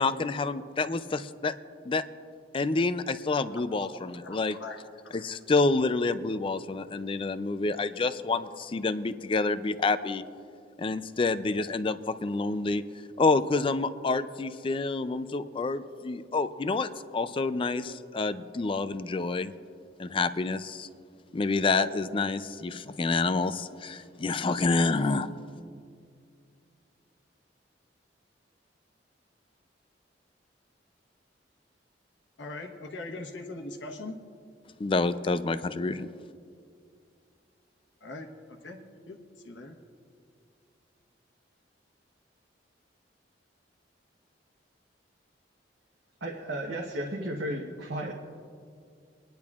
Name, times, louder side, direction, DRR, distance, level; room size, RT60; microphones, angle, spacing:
voice 1, 0.0-1.5 1.9-2.0 2.5-4.6 5.1-10.2 10.8-12.8 13.2-19.5 20.0-20.9 21.3-25.3 34.8-36.1, left 3 dB, 30° left, 13 dB, 0.4 m, -28 dB
voice 2, 3.5-4.8 32.4-34.2 38.0-38.8 39.0-39.2 39.4-39.8, left 2 dB, 85° left, 3 dB, 1.2 m, -41 dB
voice 3, 46.2-48.1, right 1 dB, 70° right, -1 dB, 1.0 m, -34 dB
24.5 x 10.5 x 2.4 m, 2.3 s
head